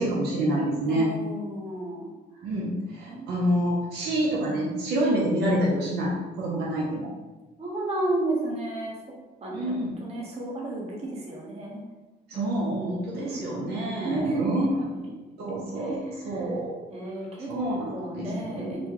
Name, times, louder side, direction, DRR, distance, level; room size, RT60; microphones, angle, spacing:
voice 1, 0.0-1.1 2.4-7.1 9.5-9.9 12.3-14.7 15.4-16.8 17.5-18.8, right 1 dB, 75° right, -4 dB, 0.7 m, -27 dB
voice 2, 0.8-2.1 3.1-3.3 7.6-8.9 9.4-11.8 13.1-13.5 14.0-14.4 14.8-15.1 15.7-16.6 16.9-17.5 17.9-18.9, right 2 dB, 40° right, -2 dB, 1.0 m, -32 dB
4.2 x 2.2 x 2.9 m, 1.2 s
cardioid pair, 110°, 17 cm